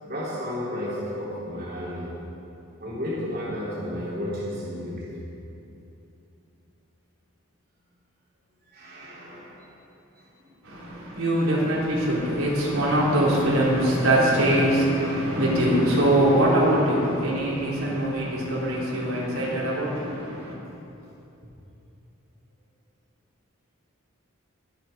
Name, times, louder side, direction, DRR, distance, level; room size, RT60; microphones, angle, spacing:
voice 1, 0.0-2.2 2.8-5.3 8.7-9.7 10.1-10.5, left 1 dB, 45° right, -7 dB, 3.3 m, -33 dB
voice 2, 10.6-20.6, right 1 dB, 90° right, -7 dB, 4.0 m, -23 dB
21.5 x 8.5 x 5.3 m, 2.9 s
head